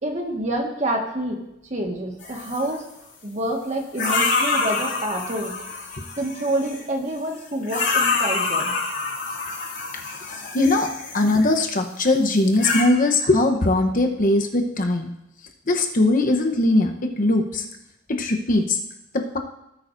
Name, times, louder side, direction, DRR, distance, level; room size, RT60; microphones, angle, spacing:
voice 1, 0.0-1.4 1.7-2.8 3.2-5.5 6.2-8.7, right 1 dB, 40° right, 1 dB, 1.7 m, -27 dB
sound 1, 2.2-2.8 4.0-6.8 7.6-11.6 12.4-12.8, left 4 dB, 65° left, 2.6 m, -26 dB
voice 2, 10.5-15.1 15.7-17.6 18.1-18.8 19.1-19.4, left 2 dB, 45° left, 4 dB, 1.0 m, -20 dB
17.5 x 8.8 x 2.6 m, 0.85 s
head